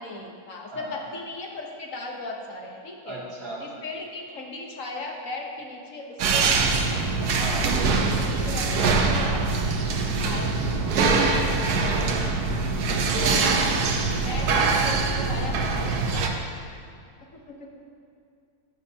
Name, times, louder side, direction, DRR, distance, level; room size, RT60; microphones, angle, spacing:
voice 1, 0.0-3.2 3.6-6.9 7.2-9.4 10.0-10.9 11.7-12.0 14.2-16.3 17.3-17.7, left 2 dB, 60° left, 1 dB, 1.3 m, -37 dB
voice 2, 3.0-3.7 7.4-7.8 11.8-12.1 13.1-13.5, right 1 dB, 65° right, -6 dB, 2.5 m, -35 dB
sound 1, 6.2-16.3, right 4 dB, 85° right, 1.3 m, -23 dB
14.0 x 7.9 x 2.8 m, 2.4 s
omnidirectional pair, 1.6 m